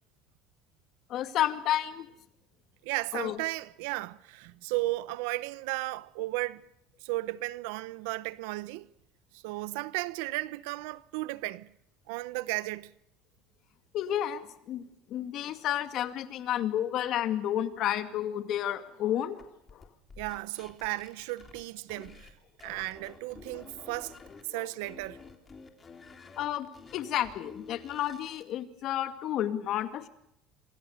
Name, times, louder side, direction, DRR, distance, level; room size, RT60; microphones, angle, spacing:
voice 1, 1.1-2.1 3.1-3.4 13.9-19.4 19.7-19.8 24.5-24.7 26.4-26.7 26.9-30.1, left 11 dB, 55° left, 2.2 m, -31 dB
voice 2, 2.8-6.7 7.0-8.9 9.3-11.7 12.1-12.9 20.2-22.3 22.6-24.2 24.5-25.2, right 20 dB, 90° right, 0.9 m, -35 dB
sound 1, 19.4-22.3 22.6-24.4 24.8-28.5, left 5 dB, 25° left, 3.4 m, -50 dB
27.5 x 23.5 x 6.6 m
cardioid pair, 135°, 0 cm